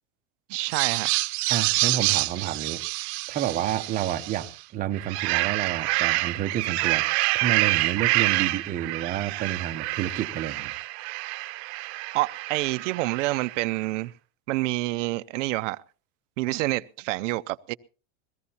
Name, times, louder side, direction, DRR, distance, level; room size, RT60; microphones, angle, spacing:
voice 1, 0.5-1.1 12.1-14.1 14.5-15.8 16.4-17.7, right 20 dB, 85° right, 0.6 m, -27 dB
sound 1, 0.6-4.5 4.9-13.6, right 22 dB, 60° right, 0.8 m, -27 dB
voice 2, 1.5-2.8 3.3-7.1 7.3-10.7, right 11 dB, 20° right, 0.7 m, -30 dB
22.0 x 16.0 x 2.8 m
supercardioid pair, 170°, 36 cm